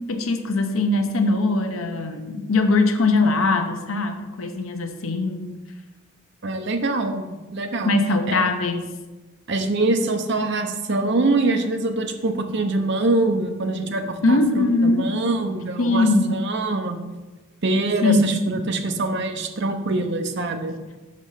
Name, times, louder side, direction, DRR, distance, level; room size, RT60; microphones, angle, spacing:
voice 1, 0.1-5.5 7.8-8.8 14.2-15.1 15.8-16.4 18.0-18.3, left 2 dB, 75° left, 6 dB, 0.8 m, -21 dB
voice 2, 6.4-7.9 8.3-8.4 9.5-17.0 17.6-20.8, right 2 dB, 55° right, 5 dB, 0.7 m, -24 dB
6.3 x 5.2 x 5.6 m, 1.2 s
head